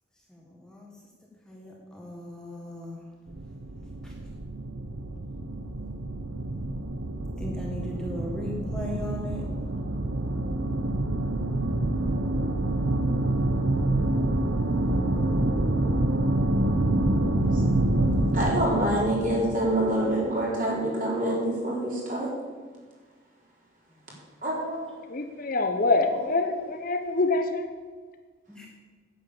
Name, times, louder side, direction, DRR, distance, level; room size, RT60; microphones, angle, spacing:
voice 1, 0.3-0.9 1.5-3.0 4.0-4.1 7.4-9.4 28.5-28.7, left 1 dB, 5° left, -2 dB, 1.5 m, -38 dB
sound 1, 3.3-20.3, right 1 dB, 80° right, 1.0 m, -27 dB
voice 2, 18.3-22.3 24.4-24.9 26.3-26.4, right 1 dB, 40° right, -4 dB, 4.0 m, -26 dB
voice 3, 25.1-27.7, left 3 dB, 45° left, 7 dB, 0.8 m, -25 dB
9.5 x 9.4 x 7.0 m, 1.5 s
head